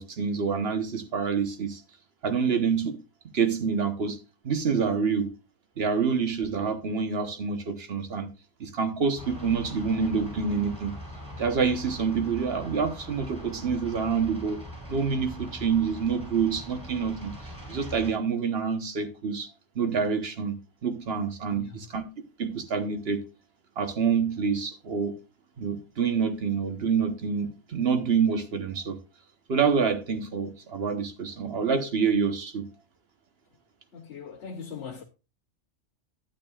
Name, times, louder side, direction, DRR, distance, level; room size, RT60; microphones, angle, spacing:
voice 1, 0.0-1.8 2.2-3.0 3.3-4.2 4.4-5.3 5.8-8.3 8.6-10.9 11.4-14.6 14.9-17.3 17.7-19.5 19.7-20.6 20.8-22.0 22.4-23.2 23.8-25.2 25.6-29.0 29.5-32.7, right 6 dB, 55° right, 1.3 m, -27 dB
sound 1, 9.2-18.1, equal, 5° right, 4.7 m, -41 dB
voice 2, 21.5-21.9 33.9-35.0, left 6 dB, 65° left, 1.0 m, -40 dB
12.0 x 9.0 x 2.4 m
omnidirectional pair, 1.3 m